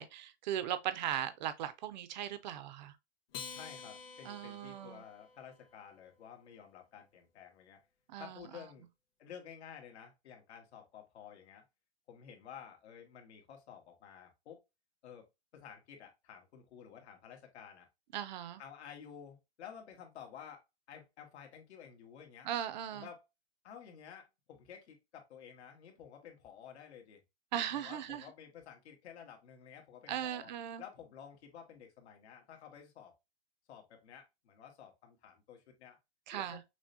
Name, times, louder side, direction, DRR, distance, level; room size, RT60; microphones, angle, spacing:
voice 1, 0.0-2.9 4.2-5.0 8.1-8.6 18.1-18.6 22.4-23.1 27.5-28.2 30.1-30.8 36.3-36.6, right 10 dB, 40° right, 0.5 m, -38 dB
Acoustic guitar, 3.3-6.0, left 6 dB, 60° left, 1.5 m, -49 dB
voice 2, 3.5-7.8 8.2-8.9 9.2-11.6 12.1-14.6 15.0-15.3 15.5-17.9 18.6-20.6 20.9-22.5 22.9-23.3 23.6-27.2 27.7-30.5 30.8-33.1 33.7-36.0 36.3-36.6, left 8 dB, 75° left, 1.5 m, -52 dB
6.1 x 2.2 x 2.6 m
supercardioid pair, 170°, 33 cm